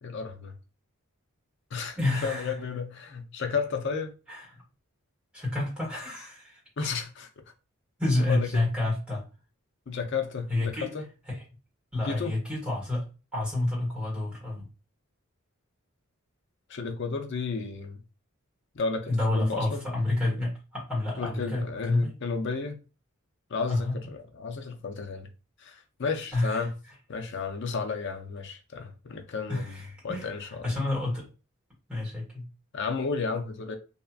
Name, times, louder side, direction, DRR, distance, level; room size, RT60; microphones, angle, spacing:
voice 1, 0.0-0.6 1.7-4.1 6.8-7.3 8.3-8.6 9.9-11.0 12.1-12.4 16.7-18.0 18.7-19.8 21.2-22.8 23.5-25.3 25.6-26.7 27.1-29.8 30.0-30.8 32.7-33.8, left 4 dB, 55° left, 0.5 m, -32 dB
voice 2, 2.0-2.7 4.3-4.4 5.3-6.6 8.0-9.2 10.5-10.9 11.9-14.6 19.1-22.1 23.7-23.9 26.3-26.6 29.5-29.8 30.1-30.3 30.6-31.3 31.9-32.4, left 2 dB, 5° right, 1.3 m, -29 dB
2.7 x 2.4 x 2.3 m
head